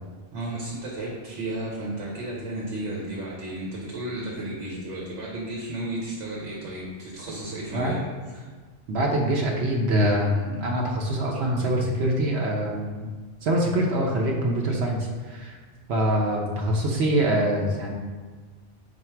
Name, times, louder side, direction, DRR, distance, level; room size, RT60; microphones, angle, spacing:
voice 1, 0.3-8.0 8.3-8.5, right 1 dB, 85° right, -3 dB, 1.1 m, -33 dB
voice 2, 7.7-8.1 8.9-13.1 13.4-15.6 15.9-17.9, right 1 dB, 65° right, -1 dB, 0.9 m, -24 dB
4.7 x 2.5 x 4.4 m, 1.4 s
omnidirectional pair, 1.2 m